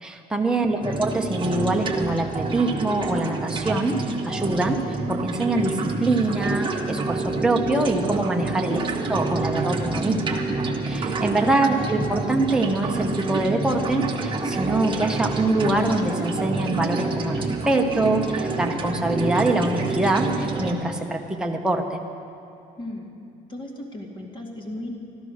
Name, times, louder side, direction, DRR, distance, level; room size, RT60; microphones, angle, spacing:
voice 1, 0.0-8.8 9.1-10.4 10.9-22.0, right 2 dB, 5° right, 2 dB, 1.0 m, -24 dB
voice 2, 0.5-0.9 8.5-9.0 11.4-12.1 22.8-23.1 23.5-24.9, left 1 dB, 30° left, 0 dB, 2.2 m, -36 dB
sound 1, 0.8-20.7, right 3 dB, 30° right, 1.5 m, -27 dB
14.0 x 12.0 x 6.4 m, 2.6 s
cardioid pair, 110°, 17 cm